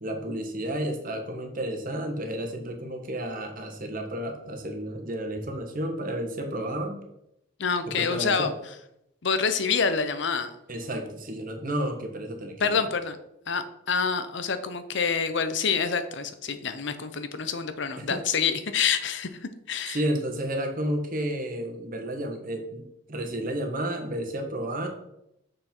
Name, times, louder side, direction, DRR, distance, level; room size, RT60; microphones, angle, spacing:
voice 1, 0.0-7.0 7.9-8.5 10.7-12.8 18.0-18.2 19.9-22.8 23.1-24.9, right 1 dB, 45° right, 3 dB, 1.3 m, -31 dB
voice 2, 7.6-8.5 9.2-10.5 12.6-13.2 13.5-20.0, left 6 dB, 60° left, 10 dB, 0.7 m, -27 dB
6.5 x 5.9 x 4.4 m, 0.81 s
head